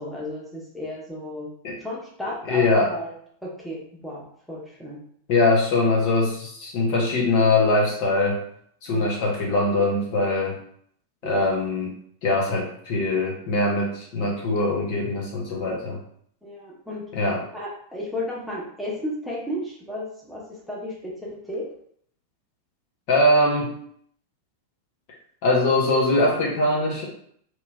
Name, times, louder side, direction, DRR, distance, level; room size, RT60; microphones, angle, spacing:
voice 1, 0.0-1.5 1.8-3.1 3.4-5.0 8.9-9.2 11.2-11.5 16.4-17.0 17.5-21.6, left 1 dB, ahead, -5 dB, 0.9 m, -34 dB
voice 2, 2.5-2.9 5.3-8.4 8.8-10.6 11.2-11.9 12.2-16.0 17.1-17.4 23.1-23.8 25.4-27.0, left 2 dB, 45° left, -2 dB, 0.8 m, -22 dB
3.0 x 2.9 x 2.3 m, 0.64 s
figure-of-eight pair, 90°, 0 cm